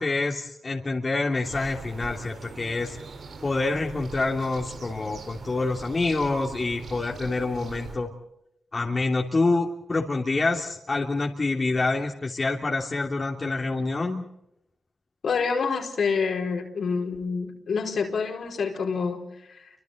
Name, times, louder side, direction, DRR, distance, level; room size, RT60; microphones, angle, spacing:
voice 1, 0.0-3.0 3.4-8.1 8.7-14.2, left 3 dB, 40° left, 0 dB, 3.1 m, -27 dB
sound 1, 1.4-8.0, right 4 dB, 75° right, 4.1 m, -42 dB
voice 2, 15.2-19.7, left 5 dB, 70° left, 2 dB, 4.7 m, -27 dB
30.0 x 25.5 x 4.0 m, 0.78 s
cardioid pair, 55°, 0 cm